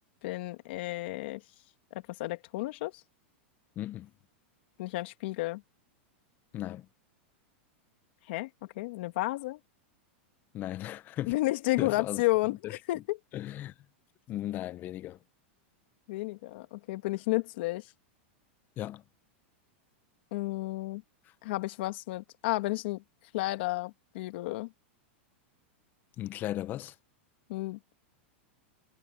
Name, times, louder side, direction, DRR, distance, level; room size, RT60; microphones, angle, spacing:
voice 1, 0.2-1.4 1.9-2.9 4.8-5.6 8.3-8.5 8.8-9.6 11.3-13.2 16.1-17.8 20.3-21.0 21.4-23.0 23.3-24.7 27.5-27.9, left 20 dB, 60° left, 2.4 m, -32 dB
voice 2, 3.8-4.1 6.5-6.9 10.5-11.3 11.8-12.2 12.5-12.8 13.3-13.7 14.3-15.2 18.8-19.0 26.2-26.9, left 13 dB, 30° left, 0.7 m, -36 dB
supercardioid pair, 150°, 6 cm